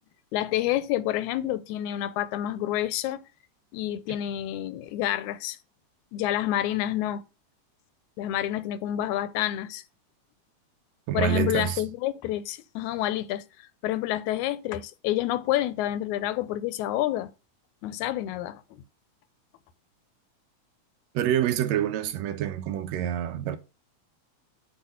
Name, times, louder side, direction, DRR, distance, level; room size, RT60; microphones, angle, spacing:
voice 1, 0.3-3.2 3.7-5.6 6.1-7.2 8.2-9.8 11.1-13.4 13.8-17.3 17.8-18.8, left 13 dB, 90° left, 2.1 m, -28 dB
voice 2, 11.1-11.8 21.1-23.6, right 10 dB, 75° right, 1.9 m, -27 dB
7.9 x 3.6 x 5.6 m
omnidirectional pair, 3.3 m